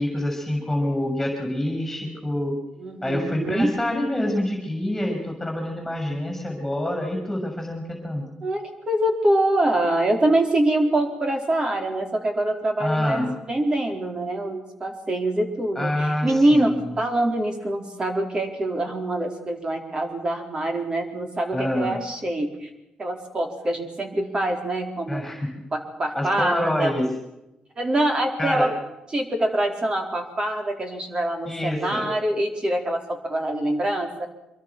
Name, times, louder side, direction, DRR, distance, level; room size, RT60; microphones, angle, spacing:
voice 1, 0.0-2.6 3.0-8.2 12.8-13.3 15.7-16.9 21.5-22.0 25.1-25.5 26.1-27.1 28.4-28.7 31.4-32.1, left 1 dB, 5° left, 2 dB, 6.8 m, -26 dB
voice 2, 2.8-3.7 8.4-22.7 23.0-25.3 25.7-26.9 27.8-28.7 29.1-34.3, right 1 dB, 35° right, 3 dB, 4.3 m, -24 dB
25.5 x 22.5 x 6.2 m, 0.93 s
cardioid pair, 95°, 3 cm